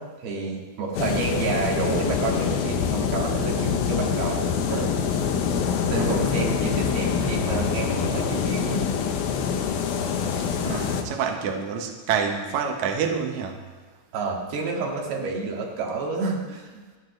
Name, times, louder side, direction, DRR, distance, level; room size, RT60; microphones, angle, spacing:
voice 1, 0.0-4.9 5.9-8.9 14.1-17.0, right 4 dB, 60° right, -1 dB, 3.7 m, -29 dB
sound 1, 1.0-11.0, left 7 dB, 70° left, 2.4 m, -25 dB
voice 2, 5.9-6.3 10.6-13.6, right 6 dB, 80° right, 3 dB, 1.6 m, -27 dB
27.0 x 10.5 x 3.3 m, 1.4 s
omnidirectional pair, 5.4 m